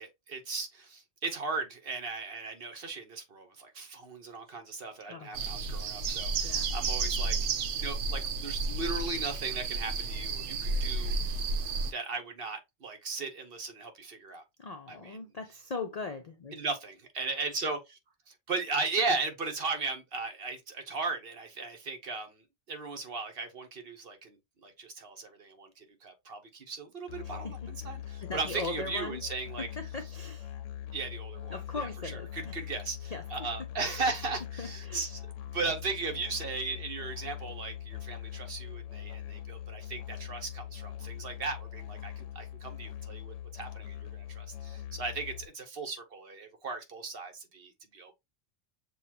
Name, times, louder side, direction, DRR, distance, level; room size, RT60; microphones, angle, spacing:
voice 1, 0.0-7.4 7.7-11.1 11.9-14.4 14.9-15.2 16.5-18.0 18.3-29.7 30.9-31.9 32.3-35.2 35.5-48.2, right 4 dB, 55° right, 1.1 m, -37 dB
voice 2, 5.1-5.4 6.4-6.7 14.6-16.6 27.2-27.7 28.1-29.2 29.6-30.6 31.5-32.5 33.1-33.3 34.6-35.1, left 3 dB, 55° left, 0.4 m, -39 dB
sound 1, 5.3-11.9, right 3 dB, 75° right, 1.0 m, -32 dB
Musical instrument, 27.1-45.5, left 10 dB, 85° left, 0.9 m, -42 dB
6.7 x 2.3 x 2.8 m
omnidirectional pair, 1.3 m